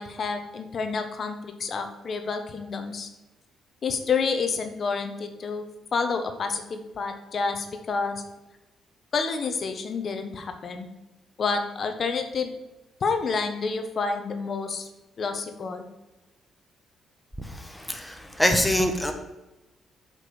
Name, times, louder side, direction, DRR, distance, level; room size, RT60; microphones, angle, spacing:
voice 1, 0.0-3.1 3.8-5.6 5.9-8.2 9.1-10.9 11.4-12.5 13.0-14.9 15.2-15.9, left 4 dB, 50° left, 7 dB, 1.1 m, -29 dB
voice 2, 17.4-19.1, equal, 5° left, 4 dB, 1.1 m, -25 dB
7.9 x 5.2 x 5.0 m, 1.0 s
cardioid pair, 90°, 0 cm